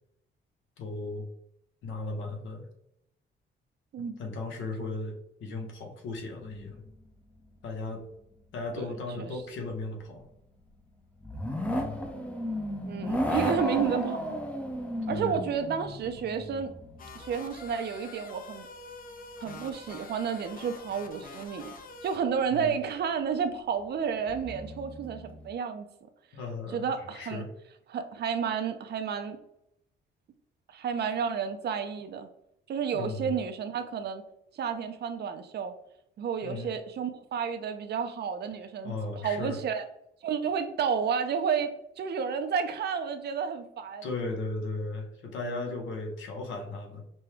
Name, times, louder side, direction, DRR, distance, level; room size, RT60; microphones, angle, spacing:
voice 1, 0.8-1.3 1.8-2.7 4.0-6.8 7.6-8.0 8.5-10.3 11.6-12.0 15.1-15.4 22.5-22.8 26.3-27.5 32.9-33.3 36.4-36.7 38.8-39.6 44.0-47.0, left 2 dB, 75° left, 3 dB, 1.0 m, -36 dB
sound 1, 6.5-7.1 7.4-7.5 11.2-17.7 22.5-22.6 24.2-25.5, left 1 dB, 5° left, 0.6 m, -34 dB
voice 2, 12.8-14.3 15.1-16.7 17.1-18.7 19.4-21.7 22.0-25.9 26.7-27.4 27.9-29.4 30.7-32.3 32.7-34.2 34.5-35.7 36.2-38.9 39.2-39.8 40.2-44.1, right 7 dB, 55° right, 8 dB, 0.5 m, -31 dB
sound 2, 17.0-22.2, left 3 dB, 45° left, 0.7 m, -46 dB
5.2 x 2.2 x 3.3 m, 0.79 s
cardioid pair, 90°, 20 cm